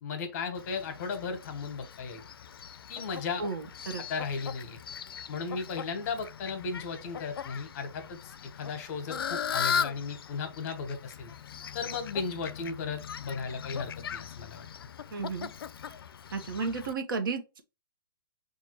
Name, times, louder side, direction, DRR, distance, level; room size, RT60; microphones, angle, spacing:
voice 1, 0.0-2.2 2.9-3.4 4.1-4.8 5.3-11.3 11.7-14.6, left 5 dB, 40° left, 1.1 m, -36 dB
Fowl, 0.5-16.9, left 7 dB, 80° left, 0.4 m, -39 dB
voice 2, 3.4-4.0 15.1-15.5 16.3-17.6, right 4 dB, 65° right, 1.1 m, -33 dB
5.4 x 2.6 x 3.0 m
hypercardioid pair, 140°, 12 cm